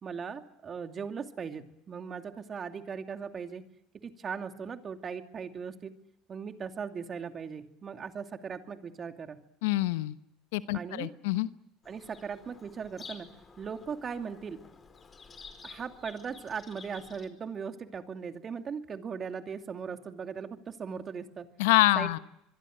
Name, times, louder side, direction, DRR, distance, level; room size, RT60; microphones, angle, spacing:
voice 1, 0.0-3.6 4.0-5.9 6.3-9.4 10.7-11.1 11.9-13.3 13.6-14.6 15.6-21.5 22.0-22.2, right 6 dB, 35° right, 7 dB, 2.6 m, -38 dB
voice 2, 9.6-10.1 10.5-11.5 21.6-22.2, left 18 dB, 75° left, 14 dB, 1.0 m, -26 dB
Bird vocalization bird call bird song, 11.8-17.3, left 5 dB, 30° left, 4.6 m, -51 dB
25.0 x 23.0 x 7.7 m, 0.81 s
hypercardioid pair, 75°, 0 cm